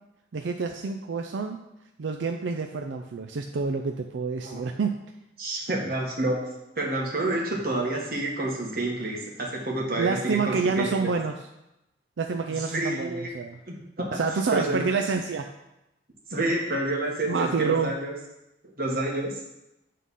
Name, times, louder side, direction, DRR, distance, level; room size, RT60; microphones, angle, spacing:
voice 1, 0.3-1.6 2.0-5.0 10.0-11.4 12.2-13.6 14.1-15.5 17.3-17.9, right 4 dB, 85° right, 4 dB, 0.5 m, -28 dB
voice 2, 5.4-6.5 6.7-11.1 12.6-13.3 13.7-14.2 14.5-14.8 16.3-18.1 18.8-19.4, right 2 dB, 50° right, -2 dB, 1.6 m, -29 dB
8.4 x 3.8 x 5.4 m, 0.90 s
head